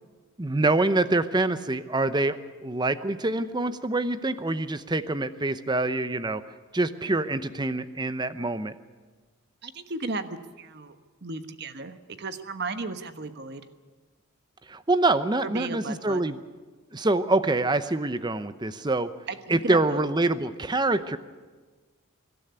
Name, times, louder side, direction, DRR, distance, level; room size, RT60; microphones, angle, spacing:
voice 1, 0.4-6.4 6.7-8.8 14.7-16.4 16.9-19.1 19.5-21.2, right 2 dB, 20° right, 12 dB, 0.8 m, -25 dB
voice 2, 9.6-11.0 11.2-13.6 15.4-16.2 19.3-20.0, right 3 dB, 55° right, 9 dB, 1.2 m, -35 dB
25.0 x 12.5 x 9.6 m, 1.4 s
head